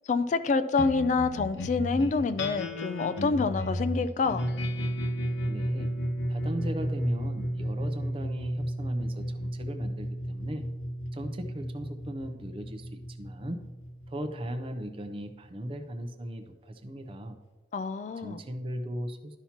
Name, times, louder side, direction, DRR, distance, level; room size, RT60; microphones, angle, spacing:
voice 1, 0.1-4.4 17.7-18.4, left 4 dB, 45° left, 12 dB, 0.3 m, -27 dB
sound 1, 0.8-15.5, equal, 85° left, 0.8 m, -33 dB
voice 2, 5.5-5.9 6.3-10.7 11.1-13.6 14.1-17.4 18.2-19.4, equal, 30° right, 6 dB, 0.5 m, -37 dB
11.5 x 5.7 x 2.8 m, 1.2 s
head